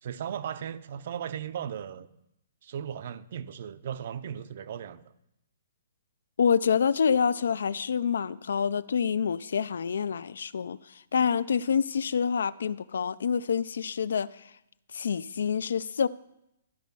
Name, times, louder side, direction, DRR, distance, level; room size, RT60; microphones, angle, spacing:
voice 1, 0.0-2.1 2.6-5.0, right 9 dB, 40° right, 0.5 m, -36 dB
voice 2, 6.4-14.4 14.9-16.1, left 6 dB, 80° left, 0.3 m, -27 dB
13.0 x 5.1 x 5.4 m
hypercardioid pair, 180°, 0 cm